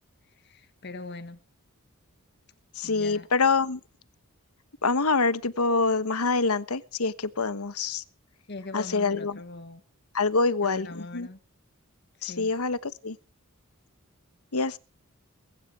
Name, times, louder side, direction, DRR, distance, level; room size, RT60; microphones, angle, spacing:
voice 1, 0.4-1.4 2.8-3.3 8.5-9.8 10.6-11.4 12.2-12.5, left 3 dB, 50° left, 1.6 m, -41 dB
voice 2, 2.7-3.8 4.8-8.0 8.7-9.4 10.1-11.3 12.2-13.2 14.5-14.8, left 4 dB, 80° left, 1.3 m, -26 dB
21.5 x 11.0 x 6.0 m
head